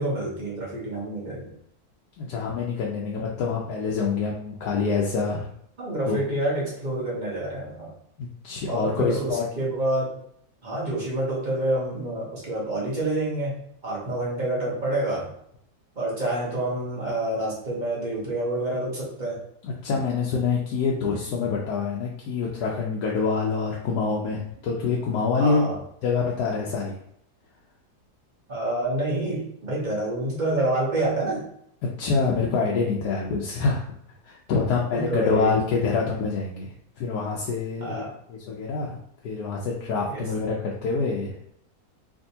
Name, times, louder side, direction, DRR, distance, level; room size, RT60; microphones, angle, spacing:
voice 1, 0.0-1.5 5.8-7.9 8.7-10.2 10.6-15.3 16.0-19.4 25.4-25.8 28.5-31.4 34.9-35.5 37.8-38.1 40.1-40.2, right 1 dB, 35° right, -5 dB, 0.9 m, -28 dB
voice 2, 2.2-5.5 6.1-6.2 8.2-9.4 19.6-25.7 26.0-27.0 31.8-33.8 34.2-37.9 38.3-39.0 39.2-41.5, left 4 dB, 80° left, -3 dB, 1.1 m, -26 dB
3.5 x 2.6 x 2.7 m, 0.70 s
omnidirectional pair, 1.7 m